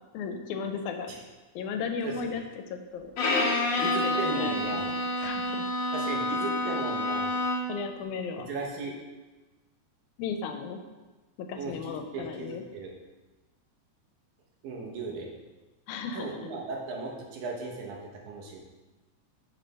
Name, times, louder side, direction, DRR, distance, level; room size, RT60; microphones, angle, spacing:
voice 1, 0.1-1.1 1.6-2.4 2.7-3.1 3.8-5.7 7.7-8.5 10.2-10.8 11.4-12.6 15.9-16.4, left 5 dB, 85° left, 5 dB, 2.0 m, -35 dB
voice 2, 2.0-2.4 3.7-4.9 5.2-5.4 5.9-7.3 8.5-9.0 11.5-12.9 14.6-15.3 16.1-18.6, right 3 dB, 80° right, -1 dB, 2.3 m, -36 dB
Bowed string instrument, 3.2-7.8, left 1 dB, 65° left, 1.4 m, -28 dB
6.1 x 3.3 x 5.1 m, 1.2 s
omnidirectional pair, 3.4 m